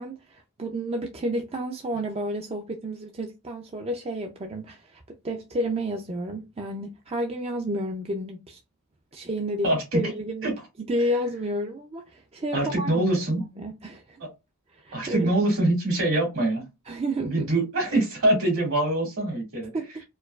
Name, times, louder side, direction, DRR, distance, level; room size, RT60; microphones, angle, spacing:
voice 1, 0.0-8.6 9.1-10.5 10.9-13.3 13.6-14.2 14.7-15.3 16.9-17.5 19.7-20.0, right 1 dB, 30° right, 0.4 m, -31 dB
voice 2, 9.6-10.0 10.4-10.5 12.5-13.4 14.2-14.3 14.9-16.6 17.2-19.7, right 1 dB, 70° right, 2.3 m, -24 dB
4.5 x 2.3 x 2.3 m
head